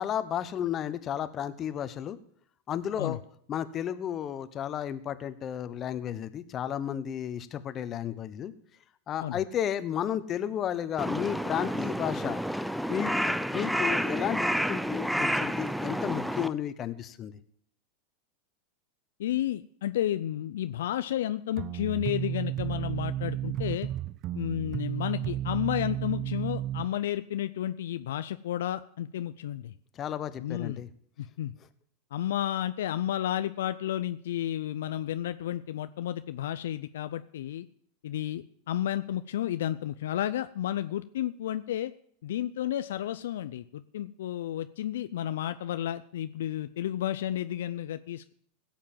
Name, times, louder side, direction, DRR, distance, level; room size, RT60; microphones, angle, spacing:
voice 1, 0.0-2.2 2.7-3.2 3.5-8.5 9.1-12.4 12.9-17.3 30.0-30.9, left 9 dB, 35° left, 13 dB, 1.1 m, -33 dB
Crow, 11.0-16.5, equal, ahead, 0.6 m, -29 dB
voice 2, 19.2-23.9 24.3-29.7 30.4-30.8 31.2-31.5 32.1-37.7 38.0-41.9 42.2-48.3, left 12 dB, 75° left, 12 dB, 0.5 m, -32 dB
sound 1, 21.6-26.9, right 12 dB, 40° right, 0.5 m, -33 dB
16.5 x 7.4 x 7.4 m, 0.64 s
hypercardioid pair, 95°, 0 cm